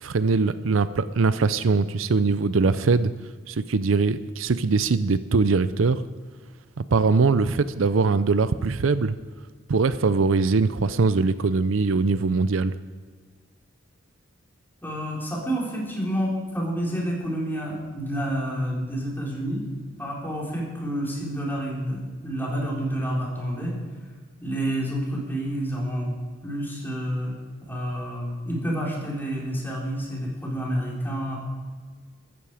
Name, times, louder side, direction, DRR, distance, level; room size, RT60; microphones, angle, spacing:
voice 1, 0.0-3.1 3.5-6.0 6.9-9.2 9.7-12.7, right 4 dB, 80° right, 14 dB, 0.6 m, -22 dB
voice 2, 14.8-19.6 20.0-23.8 24.4-26.1 26.4-27.4 27.7-31.4, equal, 10° left, -4 dB, 4.4 m, -29 dB
14.5 x 14.0 x 4.9 m, 1.5 s
head